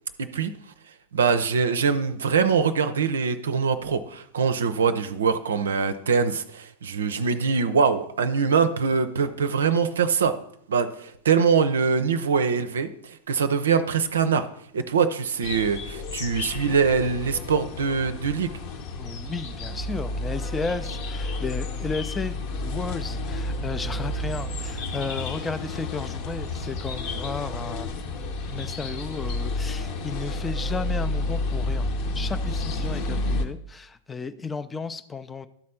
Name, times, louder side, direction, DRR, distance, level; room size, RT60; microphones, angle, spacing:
voice 1, 0.2-0.5 1.1-10.3 10.7-14.4 14.7-18.5, right 5 dB, 65° right, 10 dB, 0.5 m, -23 dB
sound 1, 15.4-33.4, left 2 dB, 45° left, 1.0 m, -31 dB
voice 2, 19.0-28.2 28.5-31.9 32.1-35.5, left 4 dB, 15° left, 12 dB, 0.5 m, -34 dB
12.0 x 4.2 x 5.7 m, 0.72 s
figure-of-eight pair, 90°, 0 cm